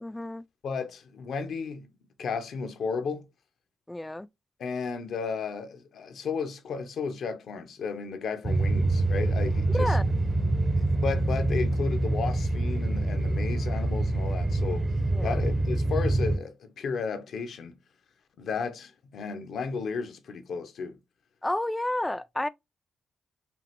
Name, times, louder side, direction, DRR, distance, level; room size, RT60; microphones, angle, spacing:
voice 1, 0.0-0.4 3.9-4.3 9.7-10.0 15.1-15.4 21.4-22.5, left 1 dB, 15° left, 0.3 m, -30 dB
voice 2, 0.6-1.9 2.2-3.2 4.6-10.0 10.9-14.9 15.2-17.7 18.4-21.0, left 5 dB, 70° left, 0.7 m, -33 dB
Inside diesel train cruise, 8.4-16.4, right 2 dB, 40° right, 0.7 m, -26 dB
5.2 x 2.5 x 2.8 m
hypercardioid pair, 45°, 0 cm